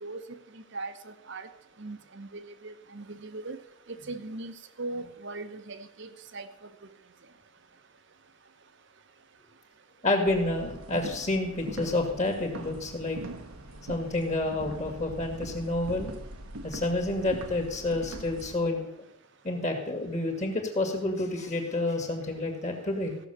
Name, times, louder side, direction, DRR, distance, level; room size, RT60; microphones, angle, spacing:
voice 1, 0.0-0.4 0.7-1.5 1.8-3.6 4.1-6.5, right 2 dB, 55° right, 10 dB, 0.9 m, -39 dB
voice 2, 10.0-13.2 13.9-16.1 16.6-19.0 19.4-23.2, left 2 dB, 30° left, 3 dB, 2.0 m, -29 dB
sound 1, 10.2-18.6, right 2 dB, 85° right, 1.2 m, -42 dB
15.0 x 6.4 x 6.9 m, 0.87 s
head